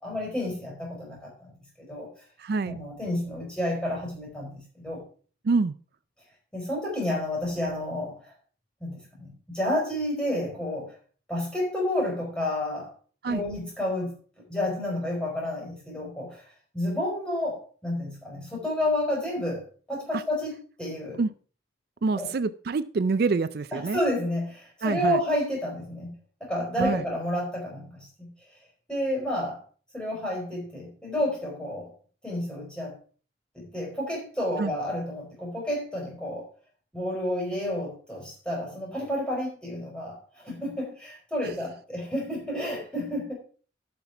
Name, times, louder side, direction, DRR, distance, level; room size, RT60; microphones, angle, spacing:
voice 1, 0.0-1.5 1.8-2.1 2.6-5.0 6.5-8.1 8.8-10.9 11.3-12.9 13.2-14.1 14.5-16.4 16.7-21.2 22.1-22.3 23.7-26.1 26.4-28.3 28.9-29.6 29.9-31.9 32.2-33.0 33.5-36.4 36.9-43.3, left 1 dB, 5° left, -3 dB, 4.9 m, -30 dB
voice 2, 2.4-2.8 5.4-5.7 13.2-13.4 20.1-20.2 21.2-21.3 22.0-24.0 24.8-25.2 26.8-27.0 34.6-34.7, right 4 dB, 55° right, 14 dB, 0.4 m, -26 dB
12.0 x 5.9 x 4.7 m, 0.41 s
head